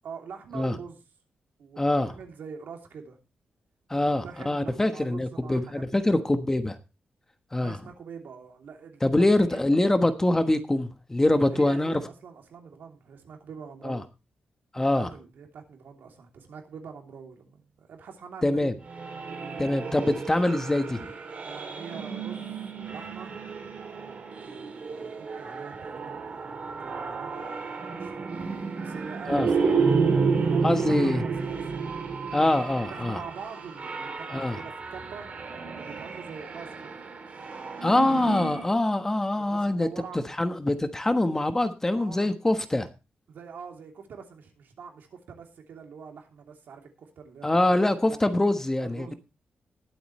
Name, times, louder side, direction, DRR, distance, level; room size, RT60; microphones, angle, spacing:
voice 1, 0.0-1.0 1.6-3.2 3.9-6.2 7.6-9.3 9.5-9.6 11.5-14.0 14.7-18.7 21.4-22.5 22.7-23.3 23.9-26.4 26.8-27.5 27.9-32.6 32.9-35.4 35.7-36.9 39.4-40.3 41.9-42.3 43.3-48.2 48.8-49.1, right 6 dB, 80° right, 3.0 m, -44 dB
voice 2, 1.8-2.1 3.9-6.8 7.5-7.8 9.0-12.0 13.8-14.0 14.7-15.1 18.4-18.7 19.6-21.1 29.3-29.5 30.6-31.2 32.3-33.2 34.3-34.6 37.8-39.9 40.1-42.9 47.4-49.1, left 1 dB, 15° left, 1.2 m, -24 dB
sound 1, 18.9-38.7, right 5 dB, 45° right, 2.9 m, -31 dB
20.5 x 8.0 x 3.1 m
wide cardioid pair, 125°, 3 cm